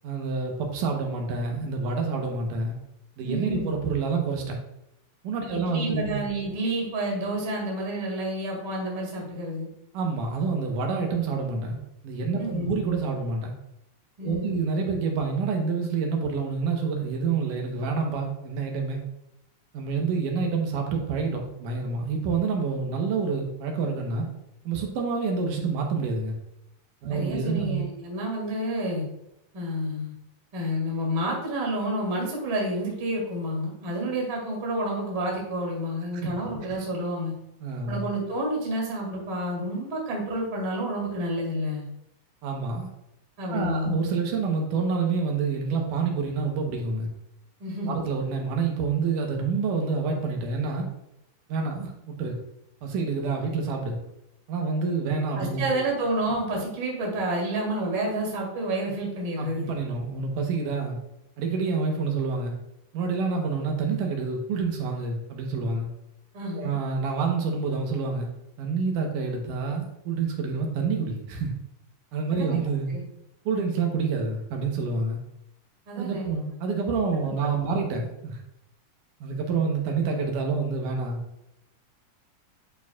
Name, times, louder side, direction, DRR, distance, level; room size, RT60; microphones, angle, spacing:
voice 1, 0.0-2.8 3.2-4.6 5.2-6.2 9.9-11.8 12.0-13.5 14.2-19.0 19.7-24.3 24.6-26.4 27.0-27.8 36.1-36.3 37.6-38.1 42.4-42.9 43.5-47.1 47.9-50.9 51.5-52.4 52.8-54.0 54.5-55.8 59.4-61.0 61.4-62.5 62.9-65.9 66.5-68.3 68.6-71.5 72.1-72.9 73.5-75.2 76.0-78.4 79.2-81.2, right 4 dB, 80° right, 2 dB, 2.6 m, -28 dB
voice 2, 3.2-3.8 5.5-9.7 12.4-12.7 14.2-14.6 27.1-29.1 29.5-30.1 30.5-37.3 37.9-41.9 43.4-43.9 47.6-48.0 55.4-59.7 66.3-66.7 72.3-72.6 72.9-73.0 75.9-76.3 77.4-77.8, right 1 dB, 40° right, -2 dB, 2.6 m, -29 dB
10.5 x 4.6 x 2.4 m, 0.85 s
omnidirectional pair, 3.7 m